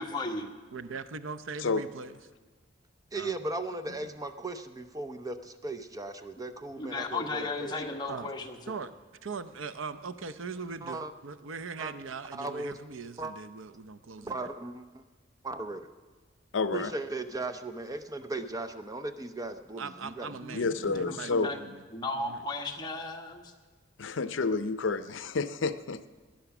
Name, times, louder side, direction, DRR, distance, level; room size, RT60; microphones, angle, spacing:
voice 1, 0.0-0.5 6.8-8.8 20.4-20.6 20.9-21.7 21.9-23.5, left 2 dB, 20° left, 2 dB, 1.3 m, -35 dB
voice 2, 0.7-2.2 3.1-3.3 8.1-8.3 8.7-8.9 9.2-14.4 19.8-21.8 22.2-22.4, right 5 dB, 85° right, 13 dB, 0.7 m, -40 dB
voice 3, 3.1-7.8 10.7-11.1 11.8-11.9 12.3-12.8 13.2-13.3 14.2-15.0 15.4-15.9 16.7-20.4, right 2 dB, 20° right, 9 dB, 0.7 m, -37 dB
voice 4, 16.5-16.9 20.5-21.5 24.0-26.1, left 4 dB, 70° left, 13 dB, 0.6 m, -29 dB
18.5 x 10.5 x 6.0 m, 1.3 s
head